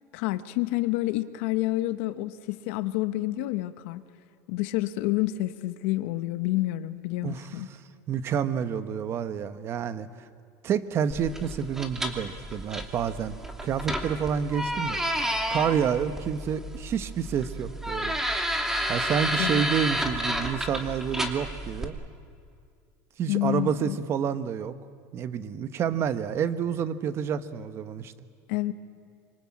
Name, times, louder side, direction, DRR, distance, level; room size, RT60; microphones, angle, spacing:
voice 1, 0.1-4.0 4.5-7.7 19.4-19.6 23.3-24.0 28.5-28.7, left 17 dB, 75° left, 11 dB, 1.0 m, -28 dB
voice 2, 8.1-10.1 10.6-13.4 13.6-15.0 15.5-18.2 18.9-21.9 23.2-24.7 25.1-28.1, right 8 dB, 40° right, 12 dB, 1.2 m, -29 dB
sound 1, 11.1-21.9, equal, 5° right, 2.4 m, -31 dB
25.5 x 24.5 x 8.8 m, 2.2 s
supercardioid pair, 135°, 7 cm